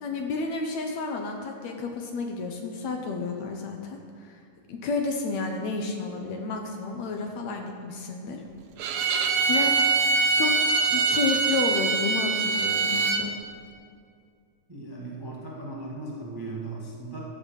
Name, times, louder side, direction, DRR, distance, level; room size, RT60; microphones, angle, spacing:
voice 1, 0.0-4.4 4.7-8.4 9.5-10.5 10.9-13.3, left 3 dB, 70° left, 3 dB, 1.9 m, -31 dB
Bowed string instrument, 8.8-13.2, right 4 dB, 85° right, 2.5 m, -23 dB
voice 2, 14.7-17.2, right 2 dB, 25° right, -4 dB, 0.5 m, -37 dB
12.5 x 7.8 x 6.4 m, 2.2 s
omnidirectional pair, 3.8 m